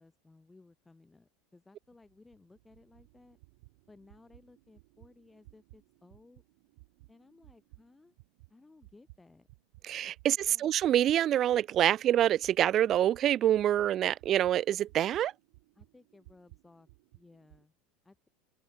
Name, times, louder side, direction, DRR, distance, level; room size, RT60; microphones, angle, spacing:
voice 1, 0.0-3.4 3.9-6.4 7.1-8.2 8.5-9.5 10.3-10.7 15.8-17.7 18.0-18.3, left 3 dB, 5° left, 5.3 m, -59 dB
sound 1, 1.8-9.9 10.2-17.6, right 26 dB, 55° right, 6.6 m, -60 dB
voice 2, 9.8-15.3, right 11 dB, 25° right, 0.4 m, -26 dB
open air
supercardioid pair, 180°, 0 cm